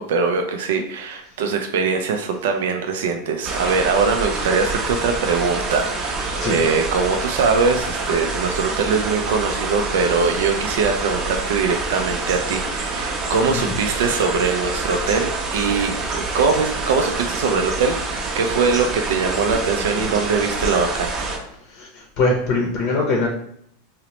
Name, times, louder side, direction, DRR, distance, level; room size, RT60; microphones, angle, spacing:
voice 1, 0.0-21.3, right 5 dB, 75° right, 5 dB, 0.3 m, -22 dB
sound 1, 3.4-21.4, right 3 dB, 40° right, 0.6 m, -26 dB
voice 2, 21.7-23.3, left 3 dB, 50° left, 0 dB, 0.6 m, -22 dB
2.8 x 2.0 x 2.9 m, 0.70 s
hypercardioid pair, 110°, 0 cm